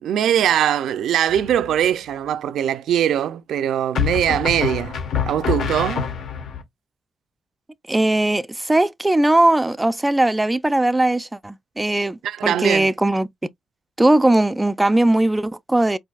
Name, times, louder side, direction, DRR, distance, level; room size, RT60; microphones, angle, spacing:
voice 1, 0.0-5.0 5.2-6.1 12.2-12.9, right 10 dB, 85° right, 0.4 m, -21 dB
sound 1, 1.3-1.9 3.9-6.6, left 7 dB, 75° left, 1.2 m, -26 dB
voice 2, 7.9-13.3 14.0-16.0, right 1 dB, 10° right, 0.3 m, -19 dB
4.5 x 2.6 x 2.4 m
cardioid pair, 100°, 0 cm